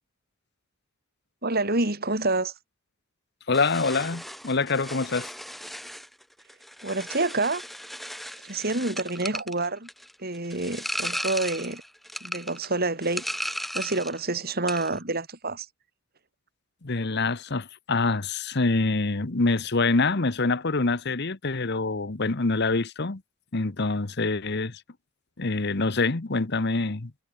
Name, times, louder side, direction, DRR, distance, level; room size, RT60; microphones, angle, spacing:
voice 1, 1.4-2.5 6.8-7.6 8.4-9.9 10.2-11.8 12.2-13.2 13.7-15.7, right 2 dB, 45° right, 4.7 m, -27 dB
voice 2, 3.5-5.3 16.8-23.2 23.5-24.8 25.4-27.1, left 3 dB, 50° left, 1.1 m, -25 dB
sound 1, 3.5-14.2 14.5-15.0, equal, ahead, 4.2 m, -36 dB
head